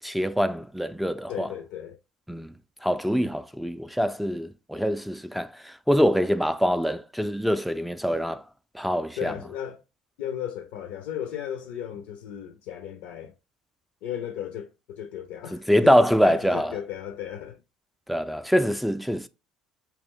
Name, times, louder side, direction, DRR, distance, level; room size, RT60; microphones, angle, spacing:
voice 1, 0.0-1.5 2.3-2.5 2.8-8.4 8.7-9.3 15.7-16.7 18.1-19.3, equal, ahead, 0.3 m, -24 dB
voice 2, 1.3-2.0 9.2-9.8 10.2-13.3 14.0-17.6, left 9 dB, 70° left, 0.5 m, -35 dB
4.2 x 2.4 x 3.6 m
hypercardioid pair, 65°, 3 cm